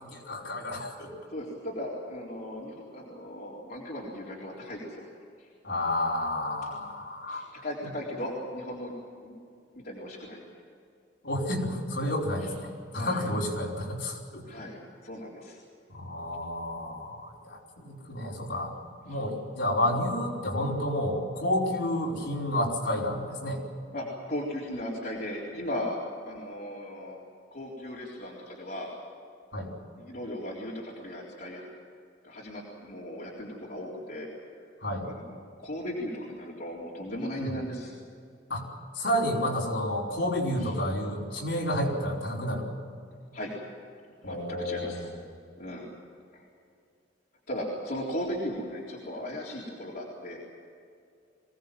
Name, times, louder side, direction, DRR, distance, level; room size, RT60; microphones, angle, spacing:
voice 1, 0.0-1.1 5.6-7.5 11.2-14.4 15.9-18.7 19.0-23.6 29.5-29.7 34.8-35.1 37.4-37.5 38.5-38.7 38.9-42.7 44.2-45.1, left 1 dB, 70° left, -3 dB, 5.2 m, -30 dB
voice 2, 1.3-5.1 5.4-5.5 7.3-8.9 9.2-9.4 9.7-10.4 12.4-12.5 13.0-13.3 14.5-15.6 19.1-19.2 23.9-26.0 26.3-27.2 27.5-28.9 30.0-31.7 32.2-34.3 35.0-37.9 40.6-40.7 43.3-43.5 44.2-45.0 45.6-45.9 46.3-46.4 47.5-50.4, equal, 55° left, -5 dB, 3.9 m, -37 dB
23.5 x 18.5 x 7.6 m, 2.4 s
head